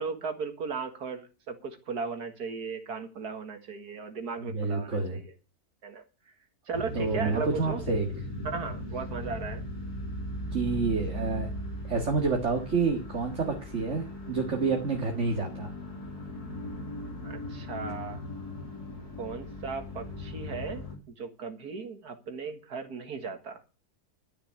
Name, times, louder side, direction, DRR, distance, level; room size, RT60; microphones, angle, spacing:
voice 1, 0.0-5.2 5.8-6.0 6.7-7.8 8.4-9.6 17.2-18.2 19.2-20.8 21.2-23.6, right 5 dB, 80° right, 2.4 m, -36 dB
voice 2, 4.5-5.2 6.9-8.1 10.5-11.5 11.9-15.7, right 4 dB, 50° right, 2.3 m, -28 dB
sound 1, 6.7-21.0, left 1 dB, 90° left, 3.9 m, -38 dB
12.5 x 6.8 x 8.8 m
omnidirectional pair, 1.6 m